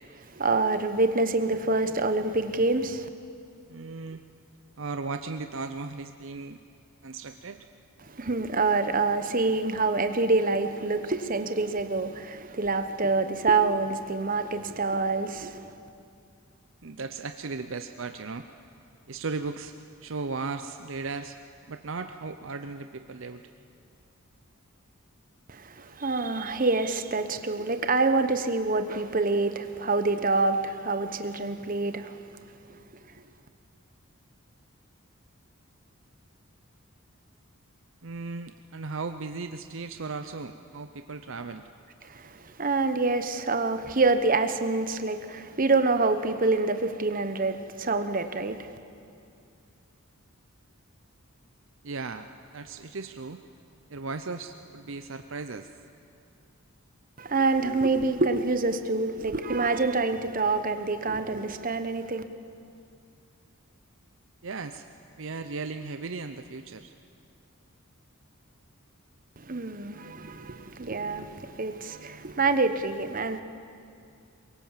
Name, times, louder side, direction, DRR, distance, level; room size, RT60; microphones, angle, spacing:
voice 1, 0.3-3.1 8.0-15.7 25.5-32.2 32.7-32.8 42.0-48.7 57.2-62.2 69.4-73.4, right 3 dB, 40° right, 1.0 m, -26 dB
voice 2, 3.7-4.2 4.8-6.6 7.0-7.7 16.8-18.5 19.1-19.7 20.0-21.4 21.7-23.4 38.0-41.7 51.8-52.3 52.5-53.4 53.9-55.7 64.4-64.9 65.2-66.9, right 4 dB, 60° right, 0.7 m, -36 dB
23.5 x 22.0 x 7.4 m
head